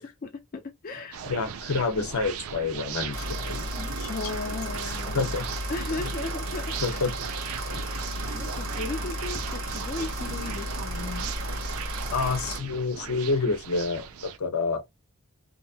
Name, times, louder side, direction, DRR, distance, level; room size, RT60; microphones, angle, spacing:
voice 1, 0.2-1.3 3.8-5.3 5.7-7.0 8.3-11.3, left 3 dB, 40° left, 0.4 m, -36 dB
sound 1, 1.1-14.4, right 7 dB, 80° right, 0.4 m, -38 dB
voice 2, 1.3-4.3 4.8-5.5 6.0-6.1 6.8-7.1 7.7-7.8 12.1-14.8, left 4 dB, 75° left, 0.8 m, -29 dB
sound 2, 3.1-12.6, equal, 60° right, 1.1 m, -34 dB
2.8 x 2.2 x 2.7 m
head